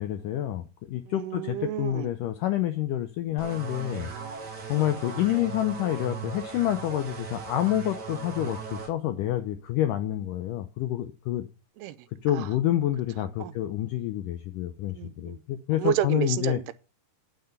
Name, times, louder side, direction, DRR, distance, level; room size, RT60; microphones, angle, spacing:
voice 1, 0.0-4.1 4.7-11.5 12.2-16.6, left 13 dB, 90° left, 1.9 m, -28 dB
voice 2, 1.1-2.1 4.0-4.4 11.8-12.0 12.3-12.5 13.4-13.5 14.9-15.4 15.7-16.7, right 14 dB, 85° right, 2.7 m, -31 dB
sound 1, 3.4-8.9, right 6 dB, 60° right, 1.0 m, -38 dB
9.1 x 8.0 x 6.6 m
omnidirectional pair, 4.6 m